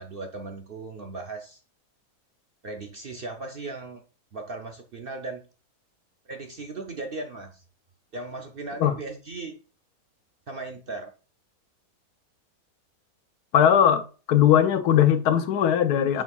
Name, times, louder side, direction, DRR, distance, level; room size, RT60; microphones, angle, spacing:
voice 1, 0.0-1.6 2.6-4.0 4.3-5.4 6.3-7.6 8.1-9.6 10.5-11.1 16.1-16.2, right 3 dB, 55° right, 0.6 m, -37 dB
voice 2, 13.5-16.2, left 9 dB, 85° left, 1.2 m, -20 dB
6.9 x 6.0 x 2.3 m
omnidirectional pair, 1.6 m